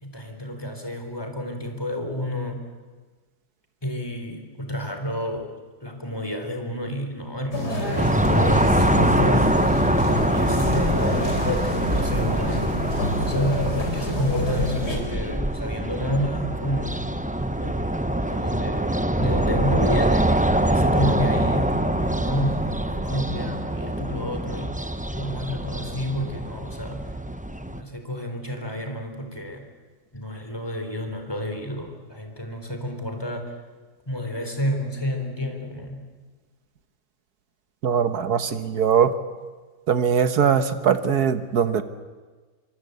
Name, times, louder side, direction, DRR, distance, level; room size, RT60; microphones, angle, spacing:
voice 1, 0.0-2.7 3.8-5.5 5.8-8.2 8.7-9.6 10.1-17.2 17.6-24.8 25.1-27.1 27.7-29.7 30.1-33.6 34.1-36.1, equal, 15° left, 5 dB, 3.7 m, -30 dB
sound 1, 7.5-15.0, left 1 dB, 80° left, 5.2 m, -27 dB
sound 2, 8.0-27.8, right 1 dB, 10° right, 0.5 m, -24 dB
voice 2, 37.8-39.1 39.9-41.8, right 7 dB, 70° right, 10 dB, 1.8 m, -21 dB
25.5 x 24.5 x 8.0 m, 1.3 s
omnidirectional pair, 1.7 m